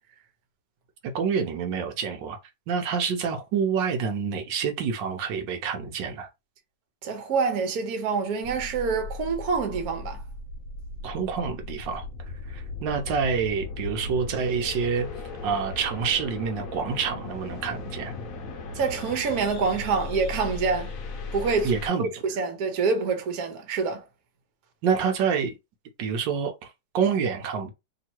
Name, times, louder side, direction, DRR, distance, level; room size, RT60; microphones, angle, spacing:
voice 1, 1.0-2.4 2.7-6.3 11.0-12.0 12.5-15.1 15.4-18.1 21.6-22.1 24.8-25.5 26.0-27.7, right 6 dB, 80° right, 1.4 m, -27 dB
voice 2, 7.0-10.2 18.7-20.9 21.3-21.7 22.0-24.0, right 5 dB, 60° right, 1.3 m, -26 dB
sound 1, 8.4-21.9, left 3 dB, 55° left, 1.1 m, -37 dB
3.1 x 2.9 x 4.4 m
omnidirectional pair, 2.0 m